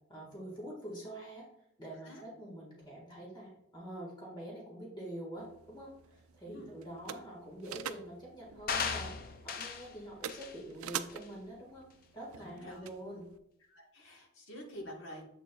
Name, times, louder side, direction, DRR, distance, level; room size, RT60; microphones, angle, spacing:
voice 1, 0.1-1.4 1.8-11.8 12.1-13.2, right 1 dB, 20° left, -3 dB, 1.6 m, -46 dB
sound 1, 5.4-13.4, right 8 dB, 85° right, 0.4 m, -47 dB
sound 2, 8.7-9.9 10.3-10.6 11.1-11.2, left 6 dB, 40° left, 0.4 m, -36 dB
voice 2, 12.4-12.9 13.7-15.2, equal, 60° left, 1 dB, 1.4 m, -48 dB
7.5 x 6.3 x 2.3 m, 0.78 s
head